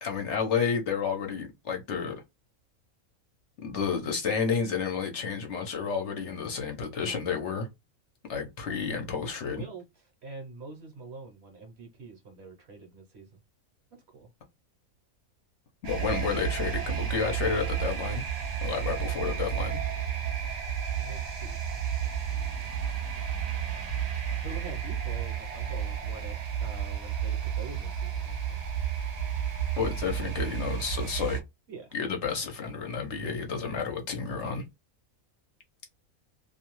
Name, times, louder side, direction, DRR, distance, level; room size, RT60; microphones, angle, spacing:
voice 1, 0.0-2.2 3.6-7.7 8.3-9.6 15.9-18.2 18.6-19.8 29.8-31.4 31.9-34.6, left 6 dB, 60° left, 0.9 m, -31 dB
voice 2, 9.5-13.3 13.9-14.3 20.9-22.7 24.3-28.6 30.0-30.5 31.7-31.9, right 3 dB, 55° right, 0.9 m, -46 dB
sound 1, 15.8-31.4, right 8 dB, 80° right, 0.3 m, -32 dB
2.5 x 2.3 x 2.9 m
omnidirectional pair, 1.5 m